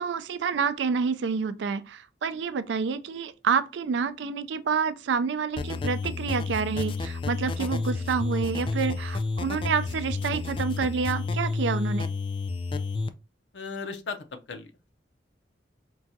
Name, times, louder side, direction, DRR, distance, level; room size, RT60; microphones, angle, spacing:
voice 1, 0.0-12.1, right 5 dB, 85° right, 0.4 m, -28 dB
sound 1, 5.6-13.1, left 3 dB, 30° left, 0.3 m, -30 dB
voice 2, 13.5-14.9, left 4 dB, 80° left, 0.6 m, -37 dB
4.6 x 2.3 x 2.6 m
head